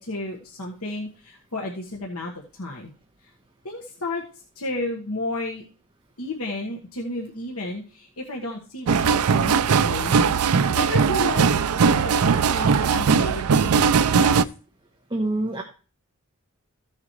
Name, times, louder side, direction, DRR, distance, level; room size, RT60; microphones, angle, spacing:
voice 1, 0.0-2.9 3.6-4.2 4.5-5.6 6.2-10.1 10.6-11.4 11.8-14.4, left 2 dB, 80° left, -1 dB, 1.5 m, -32 dB
sound 1, 8.9-14.4, right 6 dB, 90° right, 0.5 m, -19 dB
voice 2, 15.1-15.6, right 2 dB, 20° right, 1 dB, 1.2 m, -25 dB
15.0 x 7.4 x 3.2 m, 0.37 s
head